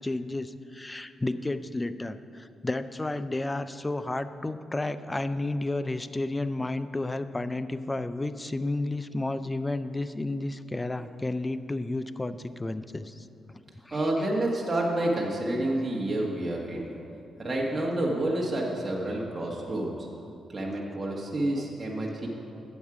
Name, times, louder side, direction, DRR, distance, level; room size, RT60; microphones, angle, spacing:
voice 1, 0.0-13.3 13.8-14.3 21.6-21.7, left 2 dB, 20° left, 13 dB, 0.4 m, -32 dB
voice 2, 13.9-17.0 17.4-20.1 20.5-22.3, right 1 dB, 30° right, -3 dB, 1.3 m, -29 dB
9.1 x 7.3 x 4.8 m, 2.7 s
cardioid pair, 80°, 0 cm